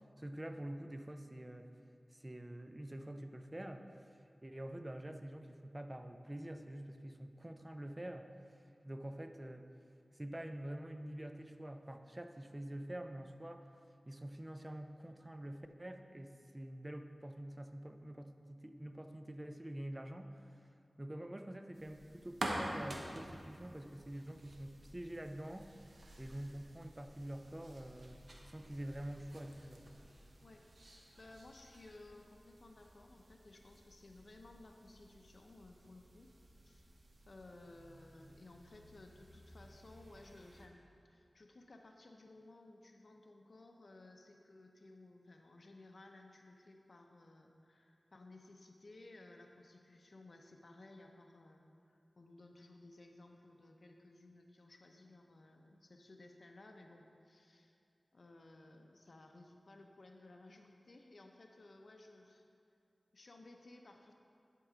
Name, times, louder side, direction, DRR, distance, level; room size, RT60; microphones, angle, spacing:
voice 1, 0.2-1.7 2.1-8.6 8.8-9.7 10.1-13.7 14.1-20.6 21.0-28.2 28.4-29.8, right 1 dB, 25° right, 7 dB, 0.5 m, -47 dB
sound 1, 21.7-40.7, right 1 dB, 75° right, 0.9 m, -50 dB
voice 2, 30.4-36.3 36.6-36.9 37.3-57.8 58.1-62.4 63.1-64.1, left 2 dB, 65° left, 3 dB, 0.6 m, -58 dB
11.0 x 4.6 x 3.8 m, 2.6 s
cardioid pair, 50°, 0 cm